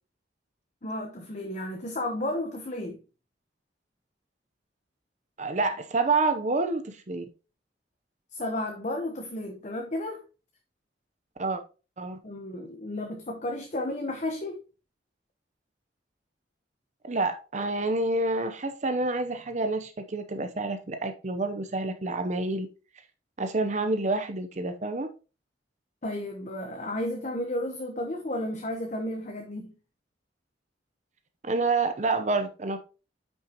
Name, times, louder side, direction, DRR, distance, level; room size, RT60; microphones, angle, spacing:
voice 1, 0.8-3.0 8.3-10.2 12.2-14.6 26.0-29.7, left 1 dB, 45° left, 1.0 m, -33 dB
voice 2, 5.4-7.2 11.4-11.6 12.0-12.2 17.0-22.7 23.4-25.1 31.4-32.8, right 3 dB, 40° right, 0.7 m, -28 dB
9.1 x 5.8 x 2.9 m
head